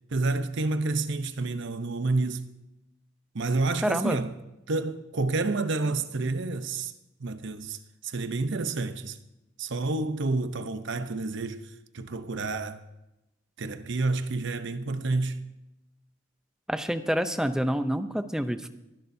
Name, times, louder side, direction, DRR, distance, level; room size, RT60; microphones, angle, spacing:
voice 1, 0.1-2.5 3.3-4.3 4.7-6.9 7.2-9.2 9.6-12.8 13.6-15.4, right 3 dB, 60° right, 0.8 m, -29 dB
voice 2, 3.8-4.2 16.7-18.7, equal, 5° right, 0.5 m, -27 dB
22.5 x 11.0 x 2.7 m
head